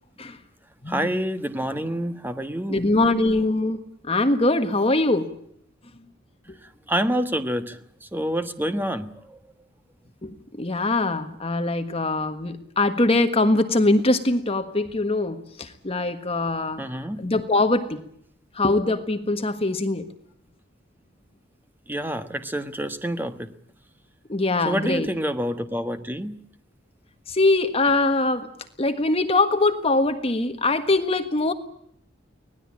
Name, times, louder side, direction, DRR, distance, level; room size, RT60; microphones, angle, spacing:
voice 1, 0.9-2.8 6.9-9.4 16.8-17.2 21.9-23.5 24.6-26.3, equal, 10° right, 9 dB, 1.4 m, -27 dB
voice 2, 2.7-3.8 4.0-5.3 10.2-16.8 17.2-18.0 18.5-20.1 24.3-25.1 27.3-28.5 28.8-31.5, left 2 dB, 30° left, 8 dB, 1.5 m, -22 dB
24.5 x 18.5 x 8.7 m, 0.69 s
head